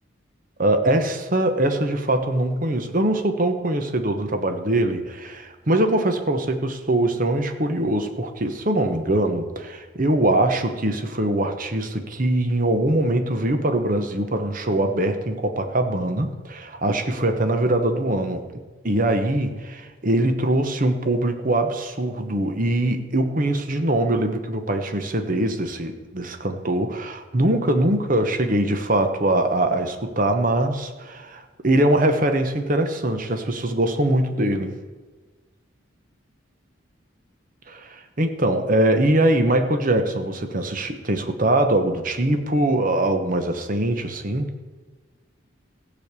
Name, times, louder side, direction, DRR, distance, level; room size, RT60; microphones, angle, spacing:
voice 1, 0.6-18.4 18.8-34.7 37.7-44.5, right 1 dB, 40° right, 7 dB, 1.1 m, -22 dB
15.0 x 5.3 x 8.2 m, 1.3 s
head